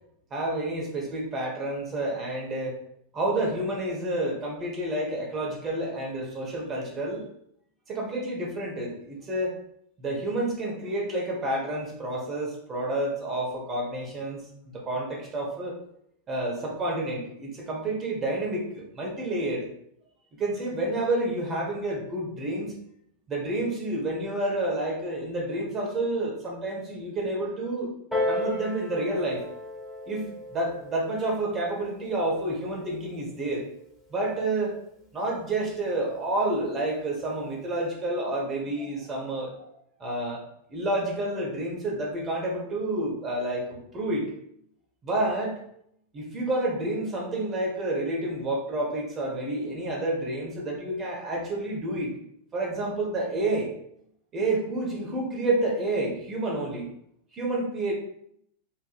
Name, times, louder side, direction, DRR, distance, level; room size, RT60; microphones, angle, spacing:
voice 1, 0.3-2.8 3.1-7.3 7.9-9.6 10.0-14.4 14.7-15.8 16.3-19.7 20.4-22.7 23.3-27.9 28.3-29.4 30.1-33.6 34.1-34.8 35.1-39.7 40.0-40.4 40.7-44.3 45.0-45.6 46.1-52.1 52.5-53.7 54.3-56.9 57.3-57.9, right 2 dB, 25° right, -1 dB, 1.1 m, -29 dB
Piano, 28.1-33.3 34.1-34.2, left 1 dB, 5° right, 1.5 m, -35 dB
4.5 x 2.6 x 2.4 m, 0.72 s
figure-of-eight pair, 90°, 0 cm